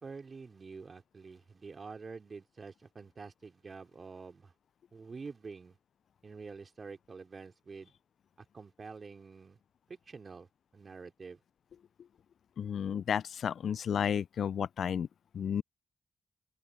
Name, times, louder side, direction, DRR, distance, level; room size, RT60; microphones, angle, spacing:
voice 1, 0.0-4.5 4.9-5.8 6.2-7.9 8.4-9.6 9.9-10.5 10.7-11.4, right 4 dB, 50° right, 3.7 m, -47 dB
voice 2, 12.6-15.1 15.3-15.6, left 8 dB, 70° left, 0.3 m, -32 dB
open air
supercardioid pair, 45°, 0 cm